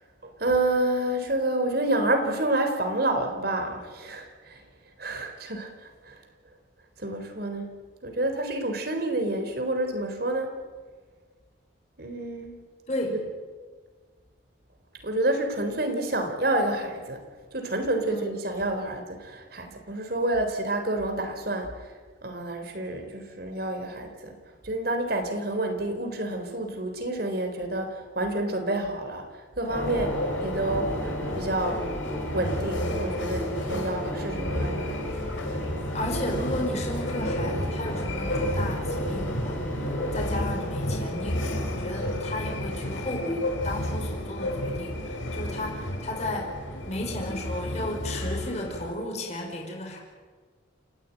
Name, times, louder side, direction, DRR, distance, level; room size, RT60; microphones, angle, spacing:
voice 1, 0.2-4.6 5.0-6.2 7.0-7.8 8.0-10.6 12.0-12.6 15.0-17.2 17.5-21.7 22.2-24.3 24.6-29.3 29.6-31.8 32.3-35.3, right 1 dB, 50° right, 5 dB, 3.9 m, -29 dB
voice 2, 12.9-13.2 18.0-18.3 35.9-41.4 41.7-46.5 46.9-50.0, left 1 dB, 35° left, 0 dB, 5.0 m, -34 dB
sound 1, 29.7-48.9, left 1 dB, 85° left, 5.0 m, -31 dB
sound 2, 29.7-40.2, right 1 dB, 10° left, 4.9 m, -38 dB
29.0 x 15.5 x 9.3 m, 1.5 s
head